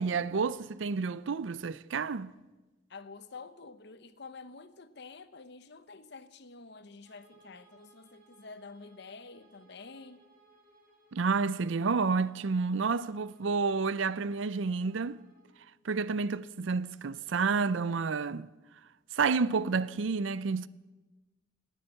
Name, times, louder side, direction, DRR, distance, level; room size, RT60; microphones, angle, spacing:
voice 1, 0.0-2.3 11.1-15.2 15.8-18.5 19.1-20.7, right 4 dB, 75° right, 0.5 m, -30 dB
voice 2, 2.9-10.2, left 4 dB, 60° left, 0.9 m, -49 dB
Bowed string instrument, 7.0-15.6, right 2 dB, 45° right, 6.8 m, -63 dB
18.0 x 10.0 x 7.8 m
head